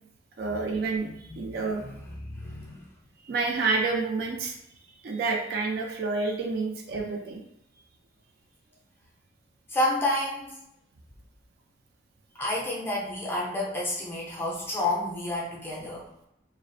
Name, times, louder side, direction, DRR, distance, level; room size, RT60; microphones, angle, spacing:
voice 1, 0.4-1.1 1.4-1.8 3.2-4.5 5.0-7.4, right 4 dB, 50° right, 1 dB, 0.3 m, -28 dB
voice 2, 1.0-2.9 6.9-7.0 9.7-10.6 12.4-16.1, left 1 dB, 10° left, -5 dB, 0.5 m, -30 dB
2.4 x 2.0 x 2.5 m, 0.79 s
head